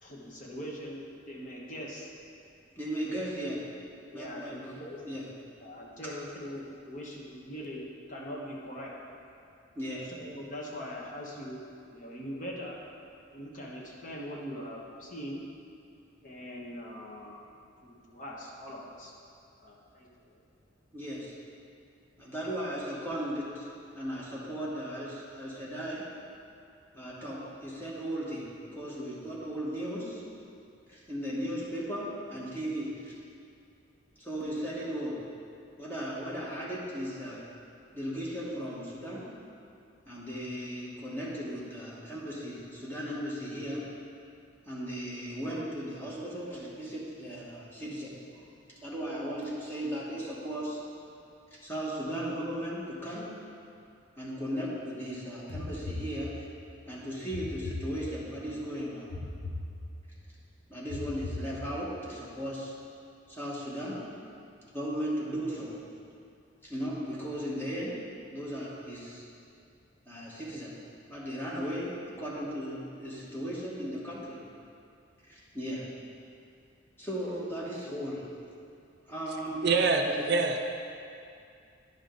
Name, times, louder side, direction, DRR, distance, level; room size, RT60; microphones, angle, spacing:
voice 1, 0.0-2.1 4.1-5.0 5.6-8.9 10.1-12.8 13.3-15.4 16.2-17.4 17.8-19.1 19.6-20.4, equal, 40° left, -3 dB, 1.1 m, -42 dB
voice 2, 2.8-3.7 4.1-4.7 5.0-5.2 6.0-6.1 9.7-10.1 20.9-21.3 22.2-23.7 23.9-26.1 26.9-30.2 30.9-33.1 34.2-35.2 35.8-37.5 37.9-39.3 40.1-43.9 44.7-50.8 51.5-53.3 54.2-56.4 56.9-59.1 60.7-62.7 63.3-64.1 64.7-65.8 66.6-68.0 68.3-69.2 70.0-70.8 71.1-74.4 75.3-75.9 77.0-78.3 79.1-79.7 80.1-80.2, equal, 10° left, -6 dB, 1.3 m, -36 dB
sound 1, 55.5-56.7 57.3-58.5 59.1-60.3 60.9-62.0, left 2 dB, 65° left, 0.7 m, -39 dB
voice 3, 79.6-80.6, right 4 dB, 55° right, 3 dB, 0.5 m, -25 dB
10.5 x 5.1 x 3.9 m, 2.5 s
head